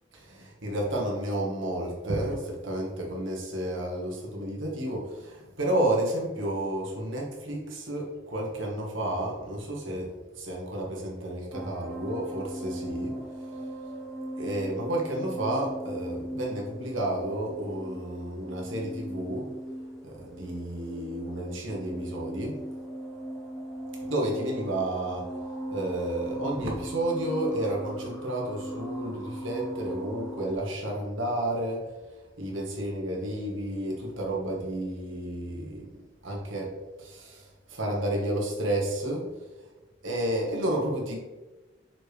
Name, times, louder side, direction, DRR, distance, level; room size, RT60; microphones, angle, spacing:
voice 1, 0.1-13.2 14.4-19.5 20.0-22.6 24.0-25.3 25.7-31.9 32.4-36.0 36.2-39.3 40.0-41.2, right 1 dB, 85° right, -1 dB, 1.6 m, -31 dB
sound 1, 11.5-30.6, right 1 dB, ahead, 0.8 m, -39 dB
6.1 x 4.9 x 3.4 m, 1.2 s
head